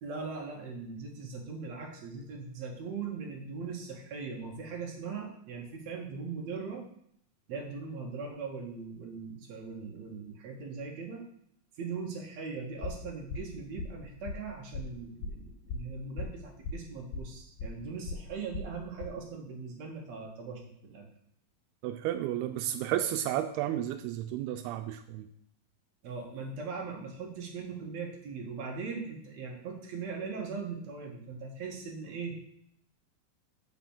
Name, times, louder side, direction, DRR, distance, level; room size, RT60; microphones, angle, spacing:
voice 1, 0.0-6.8 7.5-11.2 11.8-21.1 26.0-32.4, right 5 dB, 55° right, 1 dB, 2.2 m, -40 dB
sound 1, 12.8-19.0, left 3 dB, 90° left, 2.9 m, -39 dB
voice 2, 21.8-25.3, right 12 dB, 85° right, 8 dB, 2.5 m, -32 dB
6.0 x 6.0 x 7.1 m, 0.69 s
omnidirectional pair, 4.5 m